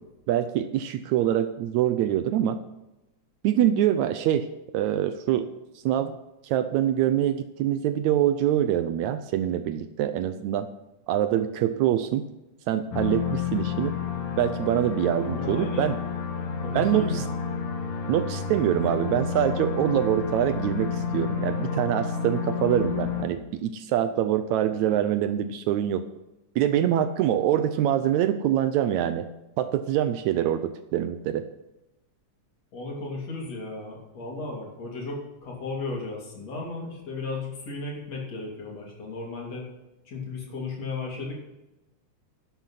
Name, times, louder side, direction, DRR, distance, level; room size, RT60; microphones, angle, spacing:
voice 1, 0.3-2.6 3.4-4.5 4.7-5.5 5.9-6.1 6.4-10.7 11.1-12.2 12.7-13.9 14.4-16.0 16.7-17.2 18.1-26.0 26.6-29.3 29.6-31.4, right 11 dB, 75° right, 10 dB, 1.8 m, -24 dB
sound 1, 12.9-23.3, left 6 dB, 85° left, 3.0 m, -30 dB
voice 2, 15.2-15.9 16.6-17.3 32.7-39.7 40.1-41.3, left 3 dB, 55° left, -2 dB, 4.0 m, -35 dB
11.5 x 8.1 x 5.7 m, 0.97 s
omnidirectional pair, 3.5 m